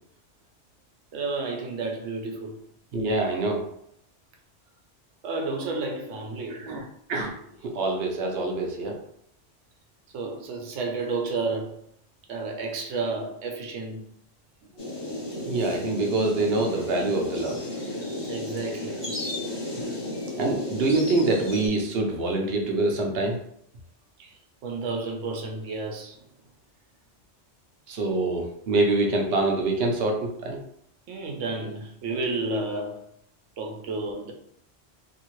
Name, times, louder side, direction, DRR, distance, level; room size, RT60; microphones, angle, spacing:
voice 1, 1.1-2.6 5.2-6.7 10.1-11.7 12.3-14.0 18.3-19.1 24.2-24.3 24.6-26.2 31.1-33.0 33.6-34.3, right 3 dB, 85° right, 1.0 m, -31 dB
voice 2, 2.9-3.6 6.5-6.8 7.1-7.3 7.6-9.0 15.4-17.6 20.4-23.4 27.9-30.6, right 2 dB, 60° right, 0.8 m, -25 dB
sound 1, 14.8-21.7, left 1 dB, 25° left, 0.7 m, -33 dB
2.8 x 2.7 x 2.9 m
omnidirectional pair, 1.3 m